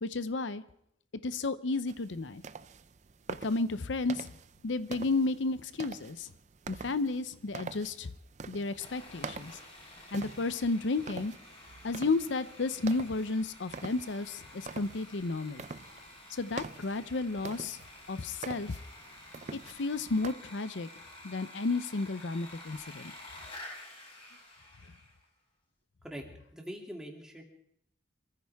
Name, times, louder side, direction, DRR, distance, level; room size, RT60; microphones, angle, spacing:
voice 1, 0.0-0.6 1.2-2.4 3.4-4.3 4.6-6.3 6.7-8.1 8.5-9.6 10.1-11.3 11.8-15.6 16.3-17.8 18.1-18.8 19.5-20.9 21.2-23.1, left 3 dB, 85° left, 13 dB, 0.7 m, -32 dB
sound 1, 1.9-20.3, right 4 dB, 40° right, 0.5 m, -46 dB
Sawing, 8.8-25.2, left 1 dB, 30° left, 5.3 m, -51 dB
voice 2, 26.5-27.4, equal, 5° right, 0 dB, 2.7 m, -42 dB
26.0 x 14.5 x 3.5 m, 0.71 s
head